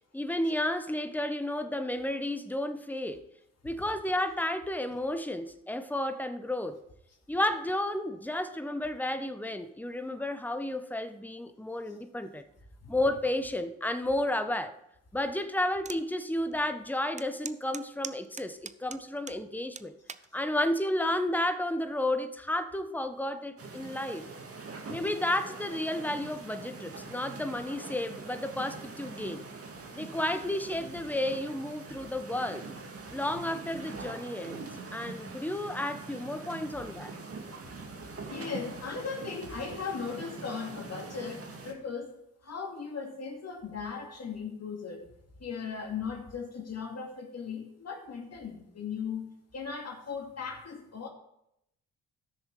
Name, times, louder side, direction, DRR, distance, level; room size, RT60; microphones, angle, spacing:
voice 1, 0.1-3.2 3.6-6.8 7.3-12.4 12.9-14.7 15.1-19.9 20.3-24.3 24.9-29.4 29.9-32.7 33.1-34.6 34.9-37.1, left 1 dB, 5° left, 9 dB, 1.1 m, -32 dB
sound 1, 15.8-16.0 16.5-16.6 17.2-19.4 19.8-20.3 21.0-21.3, right 5 dB, 20° right, 0.6 m, -41 dB
sound 2, 23.6-41.7, right 4 dB, 40° right, 2.0 m, -44 dB
voice 2, 38.3-42.1 42.4-45.0 45.4-51.1, left 5 dB, 45° left, 2 dB, 2.5 m, -38 dB
14.0 x 6.4 x 4.9 m, 0.81 s
hypercardioid pair, 50°, 36 cm